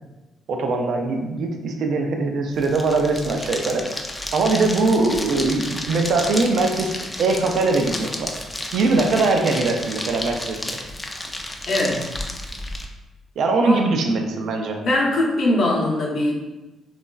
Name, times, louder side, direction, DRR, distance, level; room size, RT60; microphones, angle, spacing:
voice 1, 0.5-3.8 4.3-6.9 7.2-8.3 8.7-10.6 13.4-14.8, right 3 dB, 70° right, 4 dB, 0.3 m, -21 dB
sound 1, 2.5-12.9, left 1 dB, 15° left, 0.3 m, -32 dB
voice 2, 11.7-12.0 13.6-13.9 14.8-16.3, left 1 dB, 60° left, -3 dB, 0.7 m, -21 dB
3.0 x 2.3 x 2.2 m, 1.1 s
cardioid pair, 90°, 0 cm